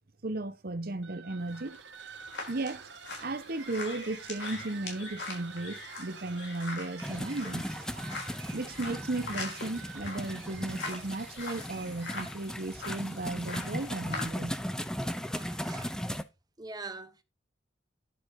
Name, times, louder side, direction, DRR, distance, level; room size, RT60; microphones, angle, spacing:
voice 1, 0.2-1.8 2.5-2.8 3.2-8.2 8.5-14.6, right 2 dB, 60° right, 1.0 m, -35 dB
sound 1, 1.0-12.4, right 6 dB, 85° right, 1.8 m, -48 dB
sound 2, 1.5-14.6, left 3 dB, 85° left, 4.1 m, -43 dB
sound 3, 7.0-16.2, equal, 5° left, 0.7 m, -37 dB
voice 2, 15.3-16.0 16.6-17.2, right 3 dB, 25° right, 1.0 m, -43 dB
10.5 x 5.0 x 4.7 m
head